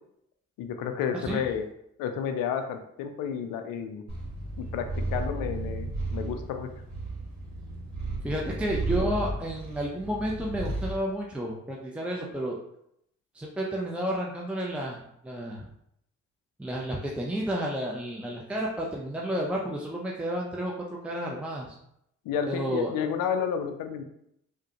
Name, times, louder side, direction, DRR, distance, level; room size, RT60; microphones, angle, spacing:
voice 1, 0.6-1.6 2.0-4.0 4.6-6.7 22.2-24.0, left 7 dB, 75° left, 7 dB, 0.5 m, -31 dB
Purr, 4.1-11.0, right 2 dB, 55° right, 1.2 m, -34 dB
voice 2, 8.2-12.6 13.3-15.7 16.6-21.8 22.5-22.9, right 1 dB, 5° right, -2 dB, 0.5 m, -31 dB
3.4 x 2.2 x 2.8 m, 0.75 s
hypercardioid pair, 40°, 33 cm